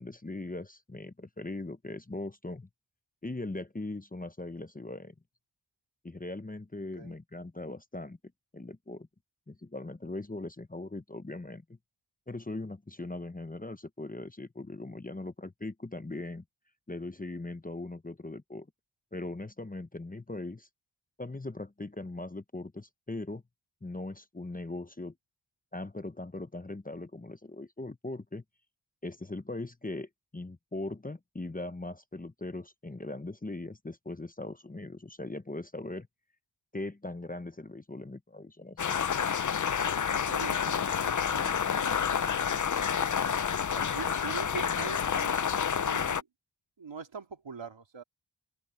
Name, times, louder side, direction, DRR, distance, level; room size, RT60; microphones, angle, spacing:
voice 1, 0.0-2.7 3.2-5.1 6.0-8.2 8.5-9.1 9.5-11.6 12.3-16.4 16.9-18.7 19.1-20.7 21.2-23.4 23.8-25.1 25.7-28.4 29.0-36.1 36.7-39.2, left 2 dB, 20° left, 0.9 m, -40 dB
sound 1, 38.8-46.2, left 7 dB, 45° left, 0.6 m, -29 dB
voice 2, 40.1-42.0 43.7-46.3 46.8-48.0, right 5 dB, 75° right, 2.4 m, -43 dB
wide cardioid pair, 60°, 45 cm